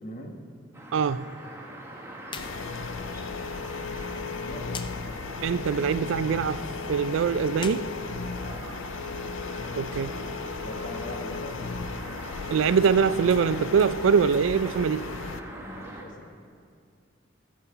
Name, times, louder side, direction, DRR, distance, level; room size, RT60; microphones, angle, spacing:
voice 1, 0.0-0.4 4.3-4.9 8.4-8.6 10.6-11.6 15.6-16.3, equal, 45° left, 2 dB, 1.3 m, -41 dB
sound 1, 0.7-16.0, right 1 dB, 15° right, 1.2 m, -42 dB
voice 2, 0.9-1.3 5.4-7.9 9.7-10.2 12.5-15.1, right 6 dB, 80° right, 15 dB, 0.4 m, -23 dB
sound 2, 2.2-2.5 2.8-2.9 4.7-4.9 7.5-8.8, left 5 dB, 25° left, 0.4 m, -40 dB
sound 3, 2.4-15.4, left 5 dB, 80° left, 0.4 m, -36 dB
13.5 x 7.3 x 5.6 m, 2.2 s
head